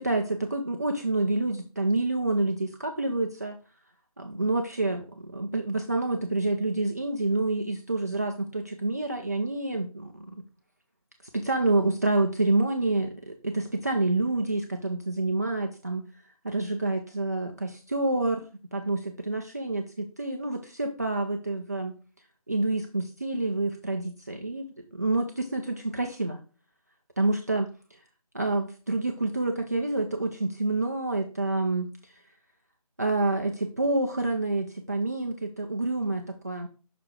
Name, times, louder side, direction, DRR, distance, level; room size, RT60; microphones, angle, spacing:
voice 1, 0.0-3.6 4.2-10.3 11.3-16.1 16.4-21.9 22.5-26.4 27.2-28.0 28.3-32.1 33.0-36.7, right 2 dB, 25° right, 3 dB, 0.5 m, -28 dB
5.9 x 4.6 x 4.9 m, 0.35 s
figure-of-eight pair, 165°, 19 cm